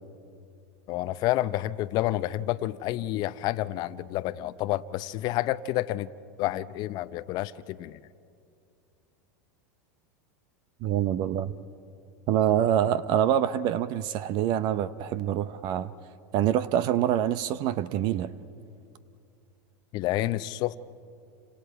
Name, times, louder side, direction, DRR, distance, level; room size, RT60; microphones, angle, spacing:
voice 1, 0.9-6.1 6.4-8.0 19.9-20.8, left 15 dB, 45° left, 13 dB, 0.7 m, -29 dB
voice 2, 10.8-11.5 12.3-15.9 16.3-18.3, right 10 dB, 50° right, 16 dB, 0.7 m, -25 dB
30.0 x 26.5 x 4.7 m, 2.5 s
hypercardioid pair, 105°, 9 cm